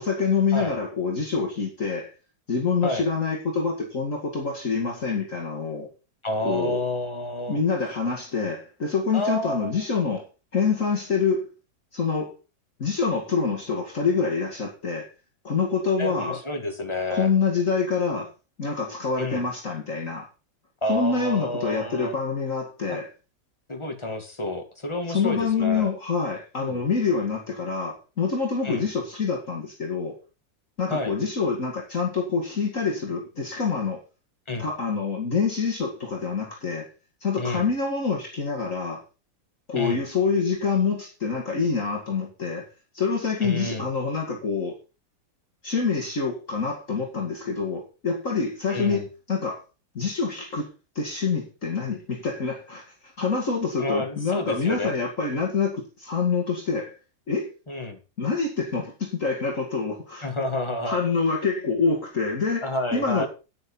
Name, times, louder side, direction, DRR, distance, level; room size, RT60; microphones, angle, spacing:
voice 1, 0.0-2.1 2.5-5.9 6.4-6.8 7.5-10.2 10.5-11.5 11.9-12.3 12.8-15.1 15.4-16.4 17.1-18.3 18.6-20.3 20.9-23.1 25.1-30.2 30.8-34.0 34.6-36.9 37.2-39.0 39.7-42.7 42.9-44.7 45.6-49.6 49.9-50.7 51.0-52.8 53.2-57.0 57.3-57.5 58.2-60.3 60.9-63.3, left 5 dB, 45° left, 2.5 m, -26 dB
voice 2, 6.2-7.6 9.1-9.8 16.0-17.3 19.2-19.4 20.8-22.2 22.9-23.0 23.7-25.9 26.6-26.8 28.6-28.8 30.9-31.1 34.5-34.7 37.4-37.7 39.8-40.0 43.4-43.9 48.7-49.1 53.8-54.9 57.7-58.0 60.2-61.0 62.6-63.3, left 1 dB, 15° left, 2.1 m, -29 dB
9.6 x 9.3 x 5.5 m
omnidirectional pair, 2.0 m